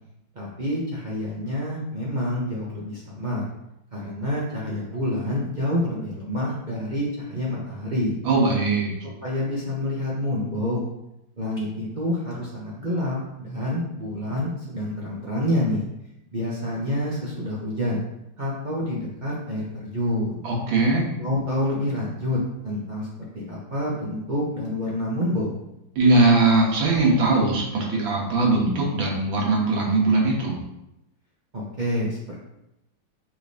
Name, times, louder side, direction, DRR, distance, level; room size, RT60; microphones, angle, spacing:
voice 1, 0.3-3.5 3.9-8.1 9.2-10.8 11.4-15.8 16.3-18.0 18.4-20.4 21.2-23.1 23.3-25.6 31.5-32.4, left 1 dB, 65° right, -5 dB, 0.4 m, -27 dB
voice 2, 8.3-8.9 20.4-21.0 26.0-30.5, right 2 dB, 85° right, -2 dB, 1.9 m, -20 dB
6.0 x 3.2 x 2.7 m, 0.85 s
omnidirectional pair, 2.1 m